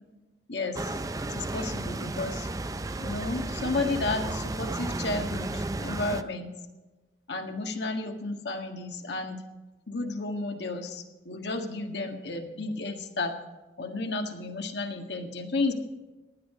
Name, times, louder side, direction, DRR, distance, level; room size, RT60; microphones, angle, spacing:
sound 1, 0.7-6.2, right 2 dB, 20° right, 0.4 m, -33 dB
voice 1, 1.2-2.5 3.0-6.5 7.3-9.4 9.9-13.3 13.8-15.7, left 3 dB, 80° left, 4 dB, 1.8 m, -32 dB
15.5 x 11.0 x 5.0 m, 1.2 s
head